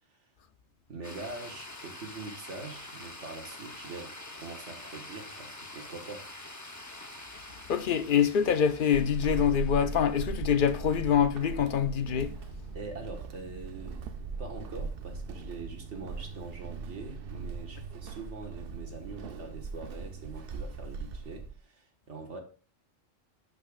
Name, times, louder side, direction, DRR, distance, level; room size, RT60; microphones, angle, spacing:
voice 1, 0.9-6.3 12.7-14.0 14.4-22.4, right 3 dB, 75° right, 1.8 m, -43 dB
sound 1, 1.0-11.3, left 2 dB, 15° left, 0.8 m, -46 dB
voice 2, 7.7-12.4, left 8 dB, 55° left, 0.7 m, -25 dB
Walk footsteps / Squeak, 8.9-21.6, right 4 dB, 55° right, 0.8 m, -39 dB
11.5 x 5.4 x 2.4 m
omnidirectional pair, 1.2 m